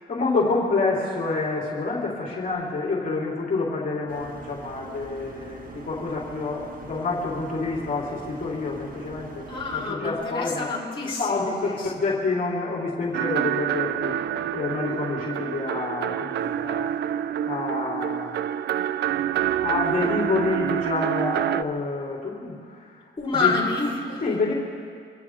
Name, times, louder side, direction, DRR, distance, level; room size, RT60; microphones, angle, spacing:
voice 1, 0.1-9.4 9.7-10.7 11.2-14.1 14.5-16.9 17.5-18.5 19.4-23.0 23.2-23.5 24.2-24.5, left 3 dB, 45° left, -4 dB, 3.7 m, -28 dB
sound 1, 4.1-9.9, right 3 dB, 45° right, 1.9 m, -42 dB
voice 2, 9.5-11.9 23.2-24.2, left 4 dB, 25° left, -6 dB, 3.7 m, -28 dB
sound 2, 13.1-21.6, right 11 dB, 60° right, 0.5 m, -27 dB
26.0 x 15.5 x 3.5 m, 2.3 s
cardioid pair, 90°, 20 cm